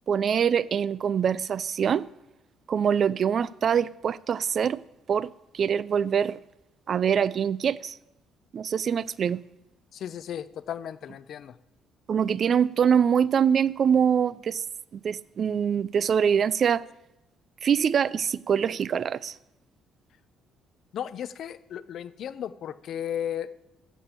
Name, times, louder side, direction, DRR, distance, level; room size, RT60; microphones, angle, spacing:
voice 1, 0.1-2.1 2.7-4.8 5.1-6.4 6.9-8.0 8.5-9.4 12.1-14.6 14.9-16.9 17.6-19.3, right 7 dB, 50° right, 0.3 m, -24 dB
voice 2, 9.9-11.5 20.9-23.5, left 9 dB, 60° left, 0.6 m, -35 dB
14.0 x 5.1 x 7.4 m
cardioid pair, 100°, 0 cm